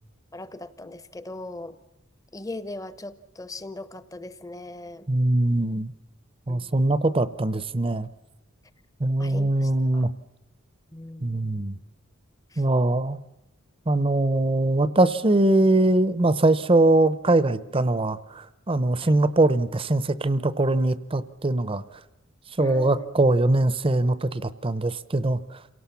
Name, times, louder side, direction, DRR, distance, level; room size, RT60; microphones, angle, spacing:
voice 1, 0.3-1.8 2.3-5.1 6.5-6.7 9.2-10.1 10.9-11.6 12.5-12.6 19.0-19.2 22.6-23.1, left 2 dB, 15° left, 14 dB, 0.8 m, -39 dB
voice 2, 5.1-5.9 6.5-8.1 9.0-10.1 11.2-11.8 12.6-13.2 13.9-21.8 22.6-25.6, right 2 dB, 25° right, 15 dB, 0.7 m, -22 dB
27.5 x 17.5 x 7.0 m, 0.96 s
head